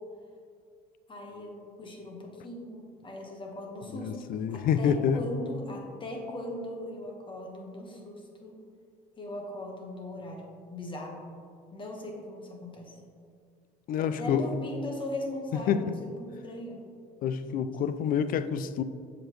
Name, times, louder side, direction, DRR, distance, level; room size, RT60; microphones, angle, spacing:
voice 1, 1.1-4.1 4.5-8.6 9.2-11.2 11.7-12.9 14.0-16.8, left 1 dB, 25° left, 1 dB, 1.3 m, -39 dB
voice 2, 3.9-5.2 13.9-14.5 15.5-16.0 17.2-18.8, left 8 dB, 50° left, 13 dB, 0.4 m, -28 dB
7.2 x 5.1 x 3.1 m, 2.2 s
supercardioid pair, 95°, 19 cm